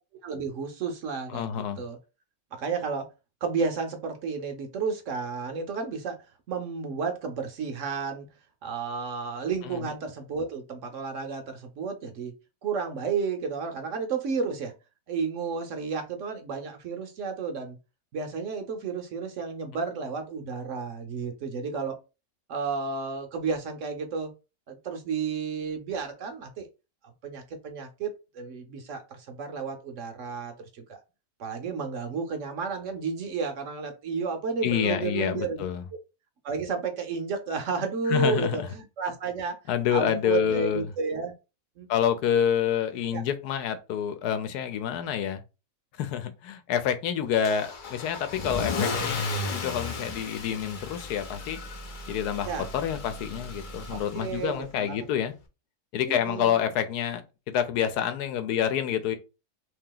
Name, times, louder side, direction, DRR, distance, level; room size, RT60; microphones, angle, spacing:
voice 1, 0.2-2.0 2.5-3.1 3.4-6.2 6.5-8.3 8.6-12.3 12.6-14.7 15.1-17.8 18.1-22.0 22.5-24.3 24.7-26.7 27.2-31.0 31.4-35.6 36.4-39.6 39.9-41.3 41.8-41.9 43.1-43.2 52.5-52.7 53.9-55.1 56.1-56.6, right 5 dB, 60° right, 0.9 m, -32 dB
voice 2, 1.3-1.8 9.7-9.8 34.6-35.8 38.1-38.7 39.7-40.8 41.9-45.4 46.0-51.6 52.1-52.5 52.7-55.3 55.9-59.2, left 9 dB, 85° left, 1.2 m, -28 dB
Car / Engine starting / Accelerating revving vroom, 47.4-54.5, left 3 dB, 65° left, 0.4 m, -34 dB
2.9 x 2.8 x 3.8 m
omnidirectional pair, 1.6 m